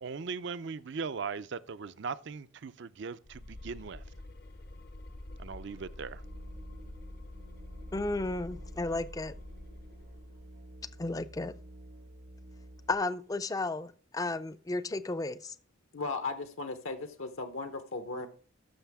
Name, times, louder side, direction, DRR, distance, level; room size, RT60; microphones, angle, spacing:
voice 1, 0.0-4.0 5.4-6.2, right 5 dB, 55° right, 0.5 m, -39 dB
sound 1, 3.2-10.5, left 1 dB, 45° left, 0.7 m, -47 dB
Musical instrument, 6.2-13.0, right 1 dB, 90° right, 3.8 m, -51 dB
voice 2, 7.9-9.4 11.0-11.5 12.9-15.5, left 2 dB, 15° left, 0.4 m, -33 dB
voice 3, 15.9-18.3, left 3 dB, 75° left, 0.9 m, -36 dB
13.0 x 6.2 x 3.5 m
head